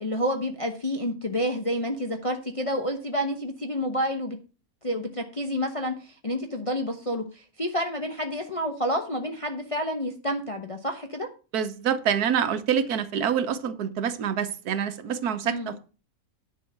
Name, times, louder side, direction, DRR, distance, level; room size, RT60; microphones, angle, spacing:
voice 1, 0.0-4.4 4.8-11.3 15.4-15.7, equal, 25° left, 1.0 m, -29 dB
voice 2, 11.5-15.8, right 8 dB, 80° right, 1.5 m, -26 dB
10.5 x 4.7 x 7.3 m
omnidirectional pair, 1.6 m